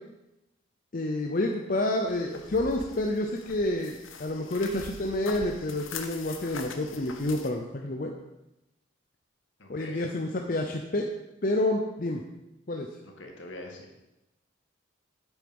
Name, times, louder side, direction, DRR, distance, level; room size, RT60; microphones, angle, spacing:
voice 1, 0.9-8.1 9.7-11.0 11.4-12.2 12.7-12.9, left 1 dB, 45° left, 2 dB, 0.7 m, -29 dB
sound 1, 2.1-7.5, left 5 dB, 90° left, 1.0 m, -43 dB
voice 2, 9.6-10.1 13.0-13.9, left 1 dB, 70° left, 1 dB, 2.0 m, -43 dB
9.1 x 7.7 x 5.4 m, 0.95 s
head